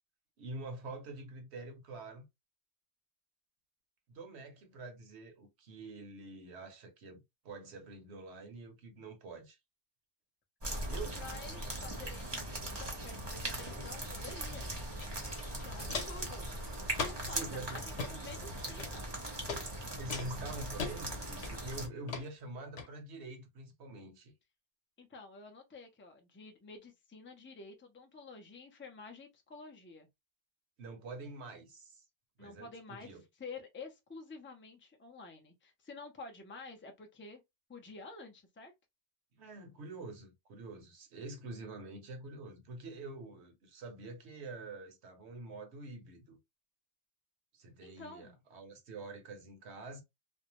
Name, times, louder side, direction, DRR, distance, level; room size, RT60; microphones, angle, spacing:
voice 1, 0.4-2.2 4.1-9.6 10.9-11.2 17.2-17.8 20.0-24.3 30.8-32.0 32.4-33.2 39.3-46.4 47.5-50.0, right 2 dB, 70° right, 1.0 m, -46 dB
sound 1, 10.6-21.9, right 1 dB, 25° right, 0.7 m, -40 dB
voice 2, 10.7-14.8 15.5-16.5 16.9-19.1 25.0-30.1 32.4-37.4 37.7-38.7 47.8-48.4, left 4 dB, 20° left, 0.3 m, -50 dB
Walk footsteps, 15.0-15.1 15.4-16.3 16.9-17.4 17.8-18.1 18.8-19.2 19.5-19.6 20.1-20.9 21.4-21.8 22.1-22.3 22.8-22.9, left 4 dB, 90° left, 1.1 m, -39 dB
2.5 x 2.1 x 2.9 m
omnidirectional pair, 1.2 m